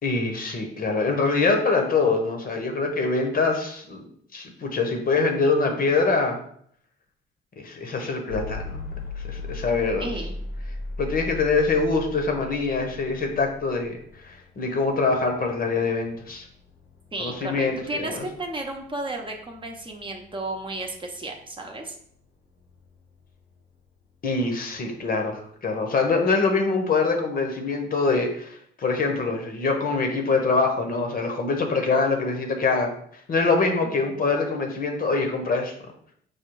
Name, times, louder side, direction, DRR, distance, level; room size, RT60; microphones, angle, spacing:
voice 1, 0.0-4.1 4.3-6.4 7.6-8.9 9.2-10.1 11.0-16.5 17.2-18.2 24.2-32.9 33.3-35.7, left 4 dB, 45° left, 3 dB, 0.9 m, -24 dB
sound 1, 8.3-24.2, left 2 dB, 85° left, 1.2 m, -40 dB
voice 2, 10.0-10.4 17.1-22.0 33.8-34.2, right 2 dB, 25° right, 2 dB, 0.7 m, -33 dB
4.9 x 2.3 x 4.5 m, 0.65 s
cardioid pair, 90°, 20 cm